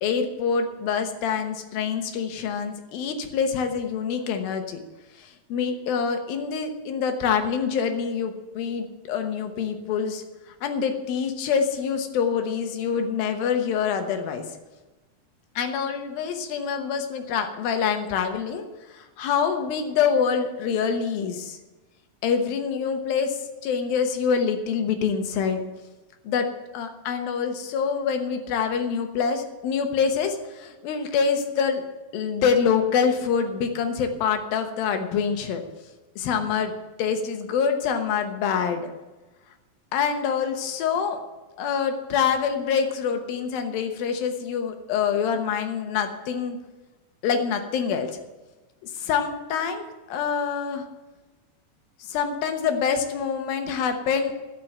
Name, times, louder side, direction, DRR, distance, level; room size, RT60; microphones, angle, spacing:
voice 1, 0.0-4.8 5.5-10.2 10.6-14.4 15.6-18.6 19.2-21.6 22.2-25.6 26.3-26.5 26.7-31.8 32.1-35.6 36.2-36.7 37.0-38.8 39.9-41.2 41.6-46.6 47.2-48.1 49.0-50.8 52.1-54.3, left 6 dB, 85° left, 6 dB, 2.9 m, -25 dB
11.5 x 7.3 x 7.9 m, 1.2 s
omnidirectional pair, 4.1 m